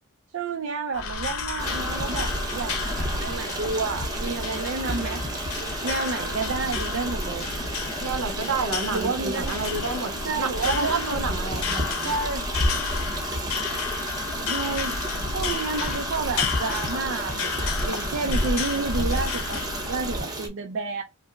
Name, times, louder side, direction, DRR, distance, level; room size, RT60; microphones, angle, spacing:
voice 1, 0.3-5.2 5.8-7.5 8.9-9.6 10.2-11.2 12.0-12.5 14.4-15.0 15.3-21.0, right 4 dB, 60° right, 0.4 m, -30 dB
sound 1, 0.9-20.2, left 3 dB, 90° left, 0.8 m, -30 dB
sound 2, 1.6-6.9, left 1 dB, 55° left, 2.1 m, -46 dB
Stream, 1.6-20.5, right 1 dB, 15° right, 0.6 m, -33 dB
voice 2, 8.0-12.1, right 4 dB, 80° right, 0.8 m, -30 dB
5.0 x 2.1 x 2.2 m
head